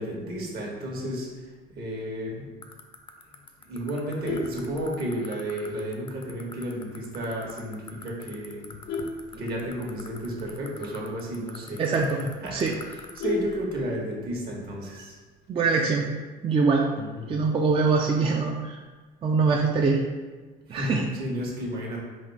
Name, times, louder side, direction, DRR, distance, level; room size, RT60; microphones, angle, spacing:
voice 1, 0.0-2.5 3.6-8.7 9.4-15.2 16.9-17.4 20.7-22.0, equal, 65° right, -1 dB, 1.3 m, -32 dB
sound 1, 2.6-13.2, left 6 dB, 30° left, 0.5 m, -41 dB
Vehicle horn car horn honking, 4.0-5.4 5.9-6.2 6.5-6.6 7.0-7.1 7.4-7.7 8.3-10.1 10.5-10.6 10.9-11.0 11.4-11.5 11.8-11.9 12.2-14.2 15.4-15.9, left 3 dB, 75° left, 0.6 m, -35 dB
voice 2, 11.8-12.2 12.5-12.7 15.5-16.1 16.4-16.9 17.3-18.8 19.2-20.0 20.7-21.0, right 4 dB, 30° right, 0 dB, 0.4 m, -23 dB
4.2 x 2.7 x 4.5 m, 1.3 s
cardioid pair, 110°, 17 cm